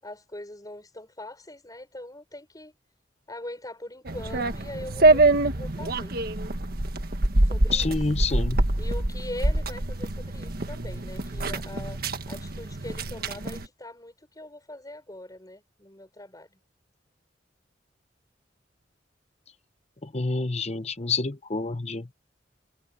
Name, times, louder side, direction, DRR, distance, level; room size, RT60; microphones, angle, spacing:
voice 1, 0.0-2.7 3.3-6.1 7.4-8.0 8.8-12.0 12.3-16.6, left 1 dB, 20° left, 6.5 m, -41 dB
sound 1, 4.1-13.7, right 2 dB, 55° right, 1.6 m, -25 dB
voice 2, 7.7-8.6 20.0-22.1, left 3 dB, 35° left, 0.9 m, -28 dB
head